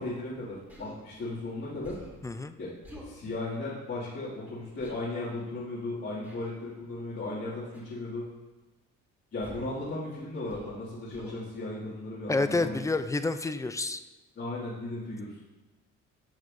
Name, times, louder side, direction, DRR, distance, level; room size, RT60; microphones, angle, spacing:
voice 1, 0.0-2.0 2.6-2.7 3.0-8.3 9.3-12.8 14.4-15.4, left 2 dB, 50° left, -10 dB, 2.3 m, -36 dB
Human voice, 0.7-1.0 1.8-2.2 2.8-3.1 4.8-5.0 6.2-6.5 7.7-8.0 9.4-9.8 10.5-10.8 11.1-11.4, equal, 5° right, 2.2 m, -47 dB
voice 2, 2.2-2.5 12.3-14.0, left 3 dB, 10° left, 11 dB, 0.4 m, -29 dB
12.5 x 6.3 x 2.6 m, 1.1 s
cardioid pair, 90°, 30 cm